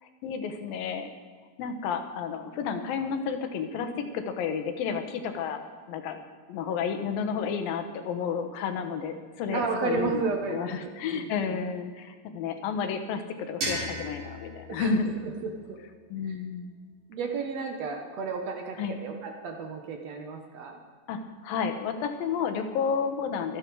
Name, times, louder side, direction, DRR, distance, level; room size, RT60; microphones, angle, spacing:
voice 1, 0.2-1.1 1.6-5.6 5.9-6.2 6.5-15.1 16.1-16.8 18.8-19.0 21.1-23.6, left 6 dB, 85° left, 7 dB, 2.9 m, -31 dB
voice 2, 9.5-11.6 14.7-14.9 15.4-15.8 16.2-16.4 17.1-20.8, right 4 dB, 60° right, 3 dB, 2.0 m, -33 dB
sound 1, 13.6-16.4, equal, 80° right, 5.7 m, -37 dB
25.0 x 8.7 x 4.7 m, 1.5 s
omnidirectional pair, 4.0 m